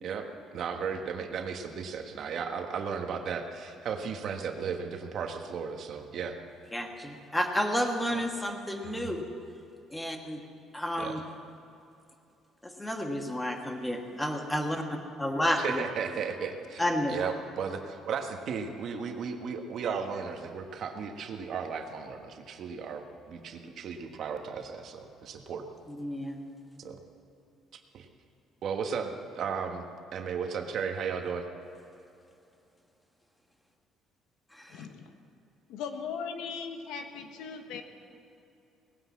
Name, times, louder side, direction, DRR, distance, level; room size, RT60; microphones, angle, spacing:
voice 1, 0.0-6.4 8.1-8.2 8.8-9.0 11.0-11.2 15.6-16.8 17.1-25.7 26.8-27.0 27.7-28.1 28.6-29.9 30.1-31.5, right 6 dB, 50° right, 5 dB, 1.4 m, -35 dB
voice 2, 6.7-9.2 9.9-10.4 10.7-11.2 12.6-14.8 15.2-15.8 16.8-17.2 25.9-26.4 34.5-34.8, equal, 5° left, 4 dB, 1.4 m, -31 dB
voice 3, 34.7-35.1 35.7-37.8, left 6 dB, 90° left, 6 dB, 1.3 m, -38 dB
19.0 x 9.8 x 7.3 m, 2.7 s
cardioid pair, 150°, 0 cm